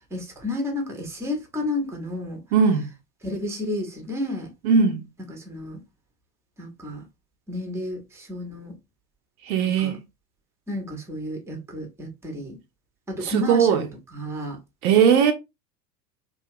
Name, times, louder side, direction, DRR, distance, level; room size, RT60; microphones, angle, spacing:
voice 1, 0.1-2.4 3.2-4.5 5.3-5.8 6.6-7.0 7.5-8.7 9.6-10.0 10.7-12.6 13.1-13.9 14.1-14.6, left 1 dB, 5° right, 0.7 m, -31 dB
voice 2, 2.5-2.9 4.6-5.0 9.5-10.0 13.2-13.8 14.8-15.3, right 6 dB, 60° right, 0.7 m, -19 dB
2.8 x 2.4 x 2.7 m
hypercardioid pair, 85°, 49 cm